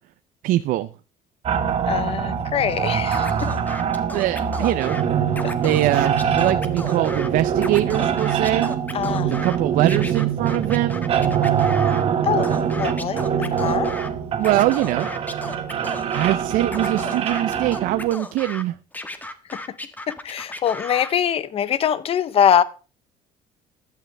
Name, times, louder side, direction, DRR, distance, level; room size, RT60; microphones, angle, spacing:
voice 1, 0.4-0.9 4.1-5.0 5.6-8.7 9.2-11.1 14.4-15.4 16.1-18.7, right 15 dB, 70° right, 0.6 m, -23 dB
sound 1, 1.5-18.1, right 8 dB, 45° right, 1.8 m, -24 dB
voice 2, 1.9-3.5 8.9-9.4 12.2-13.9 20.1-22.6, left 9 dB, 40° left, 0.9 m, -23 dB
Scratching (performance technique), 3.1-5.0 5.3-7.3 7.6-9.6 9.9-12.0 12.4-14.1 14.4-16.3 16.7-18.6 18.9-21.1, left 2 dB, 10° left, 1.5 m, -35 dB
15.0 x 11.5 x 3.4 m
cardioid pair, 135°, 15 cm